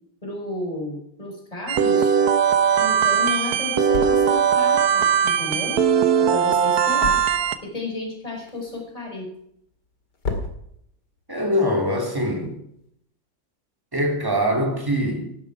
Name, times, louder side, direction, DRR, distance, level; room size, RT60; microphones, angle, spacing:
voice 1, 0.2-2.1 2.8-5.8 6.3-7.2 7.6-9.3, left 2 dB, 20° left, 5.3 m, -32 dB
sound 1, 1.7-7.6, right 7 dB, 60° right, 1.3 m, -19 dB
sound 2, 2.3-12.9, left 3 dB, 65° left, 2.9 m, -39 dB
voice 2, 11.3-12.6 13.9-15.4, equal, 10° right, 3.0 m, -23 dB
17.0 x 12.0 x 4.8 m
omnidirectional pair, 2.0 m